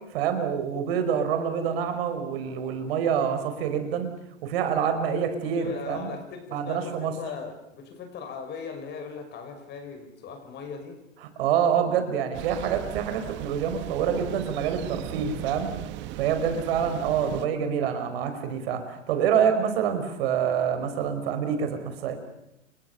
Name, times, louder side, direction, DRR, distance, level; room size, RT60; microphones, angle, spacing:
voice 1, 0.1-4.1 4.4-6.1 6.5-7.1 11.4-15.7 16.2-22.1, right 8 dB, 50° right, 8 dB, 5.3 m, -26 dB
voice 2, 5.4-11.0 16.8-17.2, left 5 dB, 25° left, 7 dB, 6.0 m, -39 dB
Thunder, 12.3-17.5, right 14 dB, 30° right, 1.5 m, -37 dB
29.5 x 22.5 x 7.1 m, 0.87 s
hypercardioid pair, 130°, 37 cm